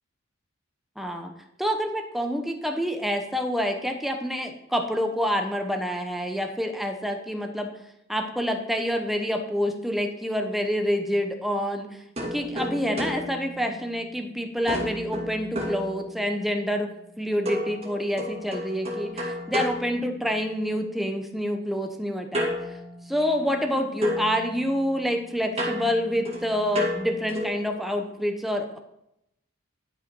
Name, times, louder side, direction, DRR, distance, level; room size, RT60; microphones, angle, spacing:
voice 1, 1.0-1.3 1.6-7.7 8.1-22.5 23.1-28.8, equal, ahead, 4 dB, 0.9 m, -27 dB
sound 1, 12.2-14.2 14.7-16.5 17.4-20.7 22.3-23.7 24.0-27.7, equal, 30° right, 2.2 m, -33 dB
11.5 x 5.7 x 4.6 m, 0.81 s
head